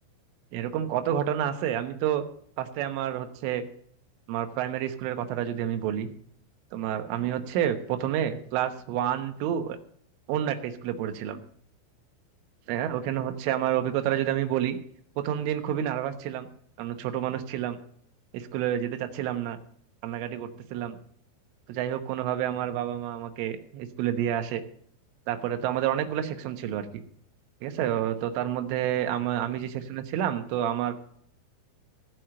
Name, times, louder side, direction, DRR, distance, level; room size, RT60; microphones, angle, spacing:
voice 1, 0.5-2.2 2.6-3.6 4.3-6.1 6.7-9.8 10.3-11.4 12.7-14.8 15.2-16.5 16.8-17.8 18.3-19.6 20.0-21.0 21.7-24.6 25.3-27.0 27.6-31.0, right 10 dB, 80° right, 6 dB, 3.6 m, -29 dB
15.5 x 6.4 x 7.6 m, 0.64 s
omnidirectional pair, 5.6 m